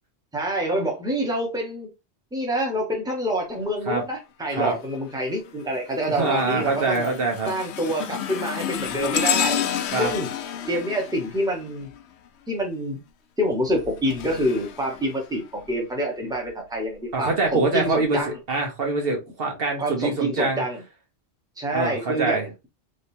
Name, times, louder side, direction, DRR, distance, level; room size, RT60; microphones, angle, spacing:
voice 1, 0.3-1.9 2.3-7.1 7.5-9.6 10.0-10.3 10.7-11.9 12.5-13.0 13.4-18.4 19.8-20.8 21.6-22.7, equal, 5° right, 1.1 m, -27 dB
sound 1, 4.6-5.0 5.5-12.3 13.5-15.7 16.4-16.5 17.4-17.5, left 8 dB, 80° left, 0.9 m, -31 dB
voice 2, 6.2-7.5 9.9-10.1 17.1-20.6 21.7-22.5, right 3 dB, 60° right, 1.3 m, -24 dB
3.8 x 3.5 x 2.7 m
omnidirectional pair, 1.1 m